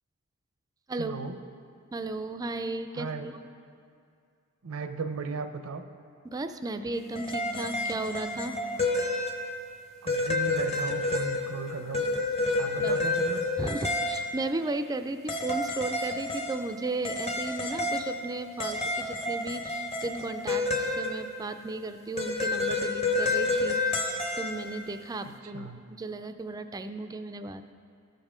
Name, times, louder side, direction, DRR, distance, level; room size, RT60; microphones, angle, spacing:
voice 1, 1.0-1.3 2.9-3.3 4.6-5.8 10.0-12.0 12.6-13.4 25.2-25.8, right 4 dB, 70° right, 8 dB, 0.6 m, -36 dB
voice 2, 1.9-3.1 6.2-8.5 12.8-13.0 13.6-23.8 24.4-27.7, right 2 dB, 15° right, 9 dB, 0.3 m, -35 dB
sound 1, 6.9-9.7 10.1-14.5 15.3-16.7 17.0-21.5 22.2-24.7, left 2 dB, 30° left, 0.7 m, -30 dB
13.5 x 5.4 x 5.0 m, 2.3 s
head